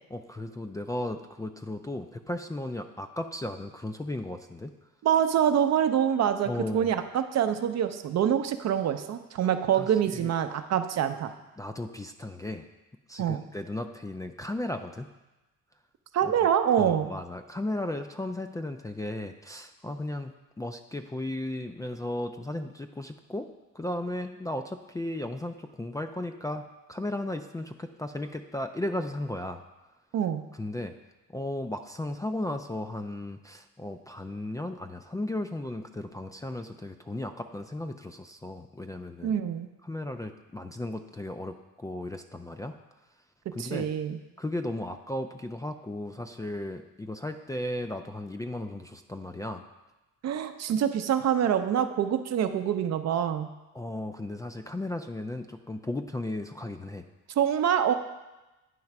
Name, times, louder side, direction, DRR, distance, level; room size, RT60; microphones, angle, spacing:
voice 1, 0.1-4.7 6.5-6.9 9.8-10.3 11.6-12.6 13.1-15.1 16.2-16.3 16.8-20.3 20.6-23.5 23.7-29.6 30.6-30.9 31.3-39.4 39.8-42.7 43.5-43.9 44.4-49.6 53.7-57.0, left 1 dB, 10° left, 6 dB, 0.3 m, -35 dB
voice 2, 5.0-11.3 13.2-13.4 16.1-17.1 30.1-30.4 39.2-39.7 43.6-44.2 50.2-53.5 57.4-57.9, right 9 dB, 60° right, 8 dB, 0.6 m, -25 dB
9.3 x 3.2 x 5.8 m, 1.1 s
cardioid pair, 90°, 30 cm